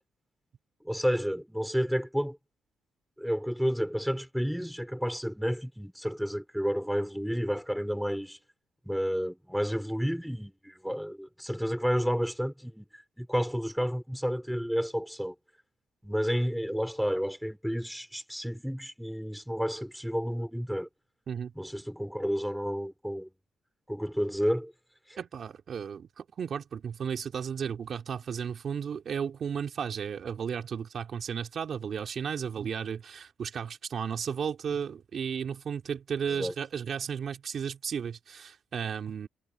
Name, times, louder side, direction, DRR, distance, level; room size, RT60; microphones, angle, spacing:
voice 1, 0.8-2.4 3.2-8.4 8.9-15.3 16.0-20.9 21.6-23.3 23.9-24.7 25.1-25.2 36.3-36.5, equal, ahead, 3.4 m, -31 dB
voice 2, 25.2-39.3, right 7 dB, 55° right, 2.8 m, -34 dB
cardioid pair, 90°, 0 cm